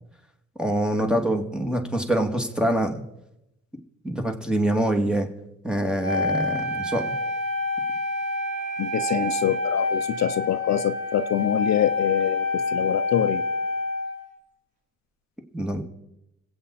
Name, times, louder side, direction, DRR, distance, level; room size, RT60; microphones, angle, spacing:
voice 1, 0.6-2.9 4.0-5.3 5.6-7.1 15.5-15.8, right 1 dB, 5° right, 2.4 m, -25 dB
Wind instrument woodwind instrument, 6.0-14.3, left 2 dB, 75° right, 4.6 m, -27 dB
voice 2, 8.8-13.4, left 11 dB, 60° left, 0.8 m, -25 dB
26.0 x 8.8 x 4.2 m
cardioid pair, 90°, 30 cm